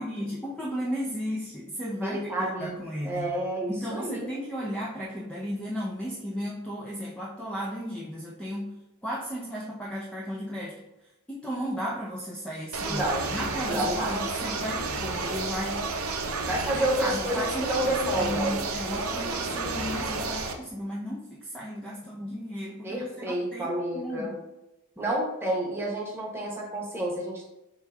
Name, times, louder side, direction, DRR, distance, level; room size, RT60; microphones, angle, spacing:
voice 1, 0.0-3.3 3.7-8.7 9.0-10.9 11.3-15.9 16.7-17.9 18.2-24.4 25.0-25.2, equal, 5° left, -4 dB, 0.5 m, -35 dB
voice 2, 2.0-2.8 3.0-4.3 12.8-13.3 13.7-14.1 16.5-18.6 18.9-19.9 22.8-24.3 25.0-27.4, right 1 dB, 10° right, -3 dB, 1.0 m, -30 dB
sound 1, 12.7-20.5, right 3 dB, 75° right, 0.6 m, -31 dB
4.5 x 2.9 x 3.5 m, 0.97 s
head